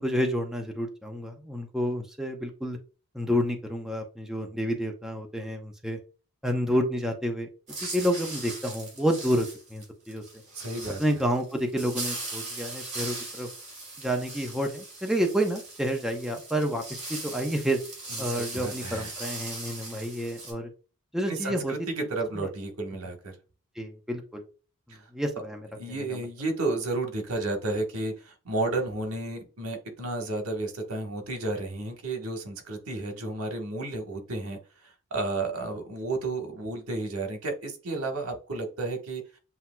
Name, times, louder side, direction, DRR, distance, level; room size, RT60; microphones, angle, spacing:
voice 1, 0.0-2.8 3.1-6.0 6.4-7.5 7.9-9.5 9.7-10.2 11.0-13.5 14.0-17.8 18.2-20.7 21.1-21.7 22.4-22.5 23.8-24.4 25.1-25.7, equal, ahead, 0.7 m, -29 dB
sound 1, 7.7-20.5, right 2 dB, 35° right, 2.5 m, -39 dB
voice 2, 10.6-11.0 18.1-19.1 21.3-23.3 24.9-25.1 25.7-39.2, right 2 dB, 80° right, 1.3 m, -32 dB
7.8 x 2.8 x 2.2 m
head